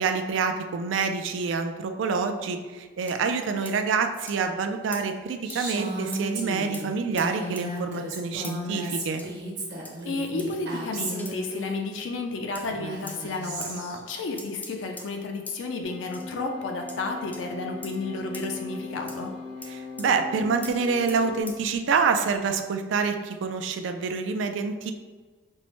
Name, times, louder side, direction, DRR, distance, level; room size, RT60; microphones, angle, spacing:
voice 1, 0.0-9.2 19.7-24.9, right 5 dB, 85° right, 6 dB, 0.3 m, -27 dB
sound 1, 3.1-3.2 3.6-3.8 4.3-4.4 4.9-5.0 5.5-5.6 6.1-6.2 6.7-6.9 7.2-7.7 8.4-8.6 9.2-9.3 9.8-10.0 10.4-10.6 11.2-11.4 12.5-12.7 13.1-13.2 13.6-13.7 14.4-15.1 15.5-15.6 16.1-16.3 16.9-17.0 17.3-17.4 17.8-18.0 18.3-18.5 19.1-19.2 19.6-19.7 20.0-20.1 20.6-20.7 21.1-21.2 21.5-21.6, left 2 dB, 10° left, 0.3 m, -42 dB
Female speech woman speaking, 5.4-11.8 12.6-14.0, right 1 dB, 60° right, 1.1 m, -34 dB
voice 2, 10.1-19.3, left 3 dB, 90° left, 3 dB, 0.4 m, -32 dB
sound 2, 15.8-21.4, left 4 dB, 30° right, 0.7 m, -39 dB
5.4 x 2.0 x 3.0 m, 1.4 s
head